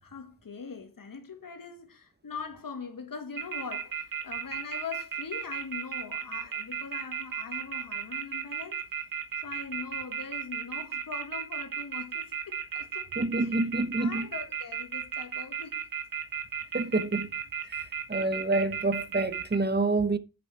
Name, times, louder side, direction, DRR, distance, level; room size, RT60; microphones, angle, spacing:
voice 1, 0.0-8.8 9.4-13.1 13.4-13.5 14.0-15.8, left 5 dB, 80° left, 2.0 m, -42 dB
sound 1, 3.4-19.6, right 7 dB, 85° right, 1.5 m, -34 dB
voice 2, 13.2-14.3 16.7-17.3 17.7-17.8 18.1-20.2, right 2 dB, 30° right, 0.9 m, -27 dB
7.8 x 7.1 x 5.9 m
cardioid pair, 55°, 33 cm